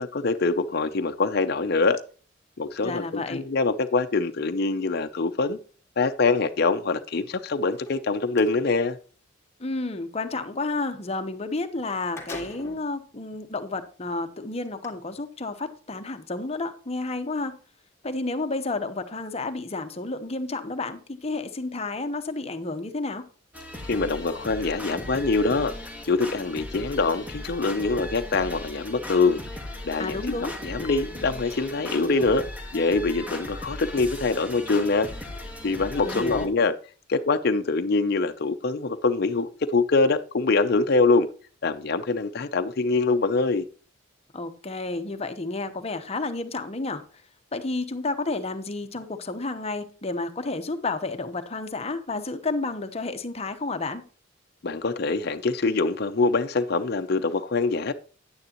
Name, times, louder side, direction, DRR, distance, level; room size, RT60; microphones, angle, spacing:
voice 1, 0.0-2.0 2.6-5.6 6.0-9.0 23.9-25.7 26.0-29.4 29.8-30.4 30.6-32.5 32.7-35.1 35.6-36.7 37.1-41.3 41.6-43.6 54.6-57.9, left 3 dB, 55° left, 0.6 m, -24 dB
voice 2, 2.8-3.4 9.6-17.5 18.0-23.2 30.0-30.5 36.0-36.5 44.3-47.0 47.5-54.0, left 3 dB, 30° left, 0.9 m, -31 dB
sound 1, 7.7-8.6 11.4-11.5 11.8-12.9 13.6-13.7 14.6-14.9, left 1 dB, 15° left, 1.9 m, -41 dB
sound 2, 23.5-36.5, left 1 dB, 5° right, 1.6 m, -38 dB
9.6 x 9.5 x 3.0 m
head